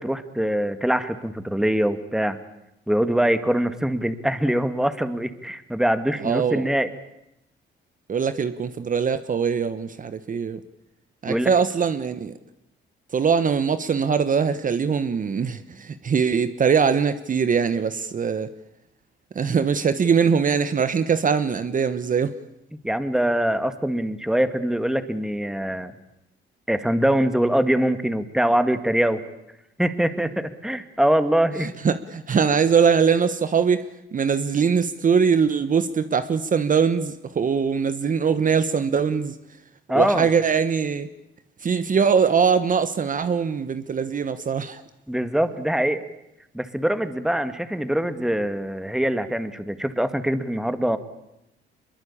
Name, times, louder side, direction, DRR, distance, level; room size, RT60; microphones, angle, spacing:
voice 1, 0.0-2.4 2.9-6.9 11.3-11.5 22.8-25.9 26.7-29.2 29.8-31.7 39.9-40.3 45.1-46.0 46.5-51.0, right 1 dB, 5° right, 10 dB, 2.0 m, -23 dB
voice 2, 6.2-6.7 8.1-10.6 11.2-12.3 13.1-18.5 19.3-22.3 31.6-33.8 34.1-39.3 39.9-41.1 41.6-44.8, right 6 dB, 45° right, 12 dB, 1.2 m, -22 dB
24.0 x 22.5 x 8.7 m, 0.87 s
cardioid pair, 90°, 20 cm